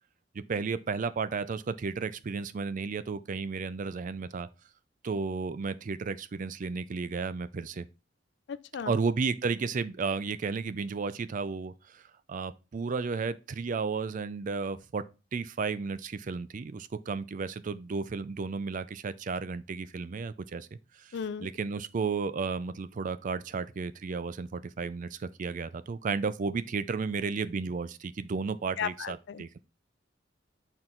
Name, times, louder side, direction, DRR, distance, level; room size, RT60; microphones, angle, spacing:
voice 1, 0.3-4.5 5.0-7.9 8.9-12.0 12.3-15.0 15.3-29.6, right 4 dB, 45° right, 0.4 m, -33 dB
voice 2, 21.1-21.5 28.8-29.4, left 7 dB, 65° left, 0.4 m, -34 dB
5.9 x 4.5 x 3.8 m
head